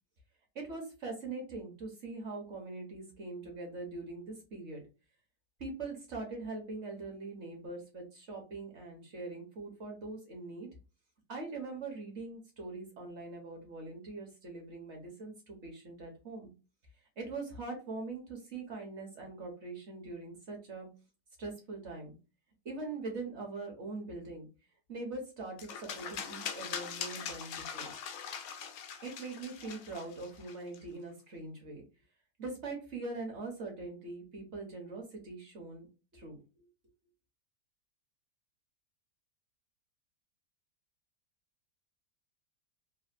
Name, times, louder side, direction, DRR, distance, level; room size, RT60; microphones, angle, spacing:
voice 1, 0.5-4.8 5.6-10.7 11.3-16.5 17.2-20.9 21.4-22.1 22.6-24.5 24.9-27.9 29.0-31.8 32.4-35.9 36.1-36.4, right 3 dB, 50° right, 2 dB, 1.0 m, -42 dB
sound 1, 25.6-30.8, left 7 dB, 70° left, 0.9 m, -42 dB
3.3 x 2.3 x 2.4 m, 0.31 s
omnidirectional pair, 1.9 m